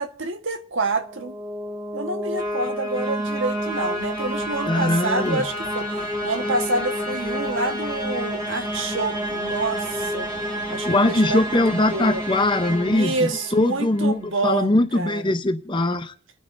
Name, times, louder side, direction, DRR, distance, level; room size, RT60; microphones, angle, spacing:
voice 1, 0.0-1.3 1.9-10.3 10.7-12.2 12.8-15.4, right 3 dB, 60° right, 1.4 m, -28 dB
sound 1, 0.9-13.9, equal, 20° right, 2.0 m, -29 dB
voice 2, 4.7-5.4 10.8-13.2 13.5-16.1, left 1 dB, 20° left, 0.7 m, -21 dB
29.5 x 9.9 x 2.6 m
head